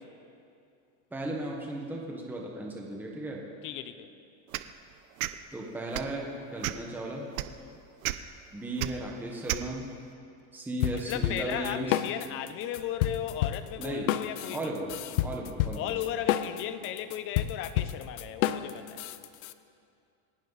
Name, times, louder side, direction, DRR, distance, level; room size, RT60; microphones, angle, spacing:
voice 1, 1.1-3.5 5.5-7.3 8.5-9.9 10.5-12.0 13.8-14.1 14.5-14.9 15.2-15.9, right 1 dB, 5° right, 1.3 m, -35 dB
voice 2, 3.6-4.1 7.6-7.8 10.9-14.7 15.8-19.1, left 11 dB, 30° left, 0.7 m, -36 dB
sound 1, 4.5-4.7 5.2-5.3 5.9-6.1 6.6-6.9 7.4-7.5 8.0-8.2 8.8-8.9 9.5-9.6, right 16 dB, 90° right, 0.8 m, -31 dB
sound 2, 10.8-12.5 12.7-19.5, left 12 dB, 80° left, 0.8 m, -30 dB
27.5 x 11.5 x 4.1 m
supercardioid pair, 165°, 41 cm